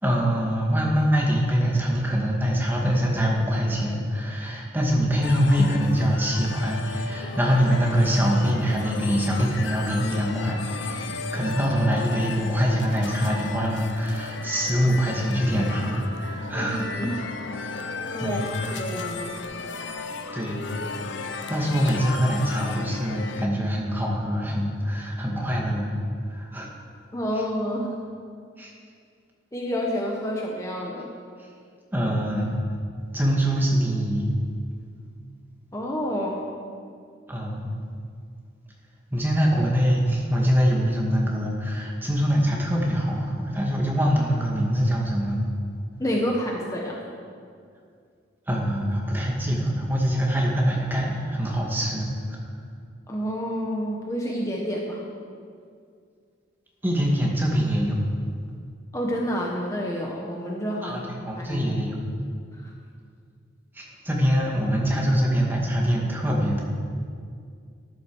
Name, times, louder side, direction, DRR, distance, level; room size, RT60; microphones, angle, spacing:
voice 1, 0.0-16.8 17.2-17.3 18.2-18.8 20.3-20.7 21.5-26.0 26.3-26.7 28.6-28.7 31.9-32.5 33.1-34.3 37.3-37.7 39.1-45.5 48.5-52.4 56.8-58.1 60.8-62.0 63.7-66.6, equal, 10° right, -2 dB, 2.1 m, -24 dB
sound 1, 5.2-23.5, left 4 dB, 80° left, 0.9 m, -35 dB
voice 2, 16.5-17.2 18.1-19.4 27.1-28.0 29.5-31.1 35.7-36.4 46.0-47.0 53.1-55.1 58.9-61.1 61.3-61.8 62.5-62.7, equal, 15° left, -2 dB, 1.3 m, -29 dB
13.5 x 11.0 x 6.3 m, 2.2 s
head